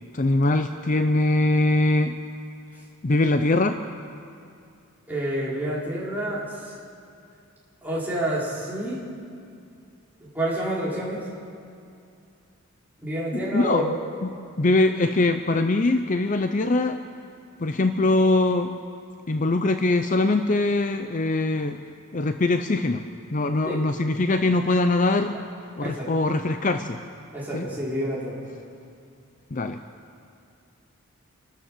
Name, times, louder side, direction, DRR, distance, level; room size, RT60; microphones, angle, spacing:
voice 1, 0.1-2.1 3.0-3.8 13.3-14.3 14.6-17.0 17.6-18.7 19.3-21.8 22.1-23.0 23.3-25.4 25.8-27.0 27.5-27.7 29.5-29.8, left 2 dB, 35° left, 8 dB, 0.6 m, -22 dB
voice 2, 5.1-6.8 7.8-9.0 10.2-11.3 13.0-13.9 23.6-23.8 25.8-26.1 27.3-28.5, right 1 dB, 10° right, -7 dB, 4.8 m, -29 dB
28.5 x 12.5 x 7.5 m, 2.5 s
head